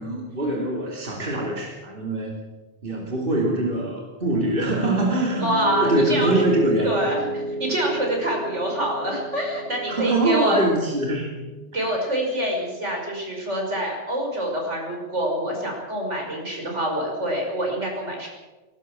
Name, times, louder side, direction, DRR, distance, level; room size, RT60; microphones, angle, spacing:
voice 1, 0.0-2.3 2.8-5.5 5.8-7.0 9.9-11.3 11.7-11.9, right 2 dB, 50° right, -1 dB, 3.2 m, -24 dB
Piano, 4.2-12.3, equal, 70° left, 4.6 m, -31 dB
voice 2, 5.4-6.4 6.8-10.6 11.7-18.3, right 1 dB, 85° right, 0 dB, 6.2 m, -26 dB
19.0 x 18.0 x 7.5 m, 1.2 s
omnidirectional pair, 1.2 m